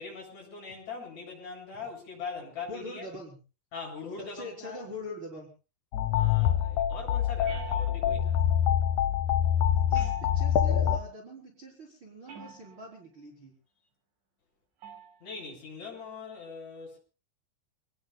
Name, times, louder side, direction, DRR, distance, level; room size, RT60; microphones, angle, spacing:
voice 1, 0.0-3.1 3.7-4.8 6.1-8.4 15.2-17.0, left 5 dB, 40° left, 8.9 m, -41 dB
voice 2, 2.7-3.4 4.2-5.5 9.9-13.5, left 1 dB, 30° right, 4.5 m, -43 dB
sound 1, 5.9-11.0, left 10 dB, 70° left, 1.9 m, -25 dB
sound 2, 7.5-8.3 9.9-10.8 12.3-13.0 14.8-15.2, right 6 dB, 85° right, 7.8 m, -47 dB
29.0 x 19.5 x 2.3 m
omnidirectional pair, 5.2 m